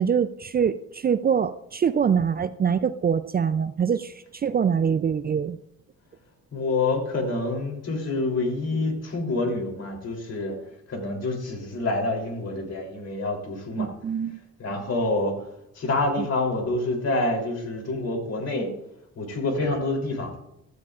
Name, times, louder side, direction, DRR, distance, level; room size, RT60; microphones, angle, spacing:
voice 1, 0.0-5.6 13.8-14.4 16.2-16.3, right 7 dB, 30° right, 12 dB, 0.4 m, -24 dB
voice 2, 6.5-10.5 10.9-13.9 14.6-15.3 15.8-18.7 19.2-20.3, left 2 dB, 55° left, 3 dB, 3.3 m, -27 dB
16.0 x 13.5 x 2.5 m, 0.80 s
cardioid pair, 90°, 30 cm